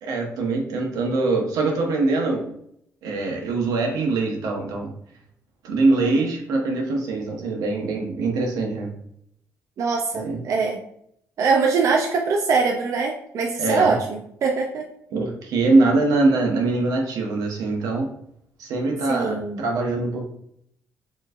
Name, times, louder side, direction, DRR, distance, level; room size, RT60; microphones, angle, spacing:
voice 1, 0.0-2.5 3.0-4.9 5.6-8.9 10.1-10.4 13.6-14.0 15.1-18.1 18.6-20.2, right 3 dB, 90° right, 1 dB, 1.0 m, -23 dB
voice 2, 9.8-10.8 11.4-14.9 19.1-19.6, right 4 dB, 60° right, 1 dB, 0.5 m, -23 dB
4.5 x 3.1 x 2.4 m, 0.72 s
cardioid pair, 120°, 6 cm